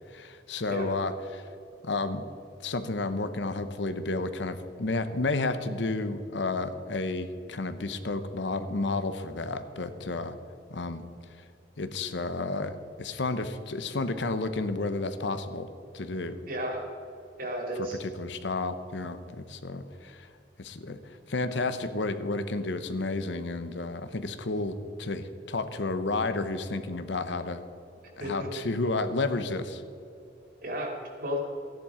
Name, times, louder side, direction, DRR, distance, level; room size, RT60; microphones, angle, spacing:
voice 1, 0.1-1.4 1.8-2.3 2.6-10.4 10.7-11.1 11.8-15.7 15.9-16.4 17.8-20.3 20.6-21.0 21.3-27.6 28.2-29.8, left 3 dB, 80° left, 10 dB, 0.9 m, -31 dB
voice 2, 16.5-16.8 17.4-18.0 28.2-28.5 30.6-31.4, equal, 55° right, 1 dB, 2.7 m, -33 dB
14.0 x 10.5 x 5.0 m, 2.6 s
head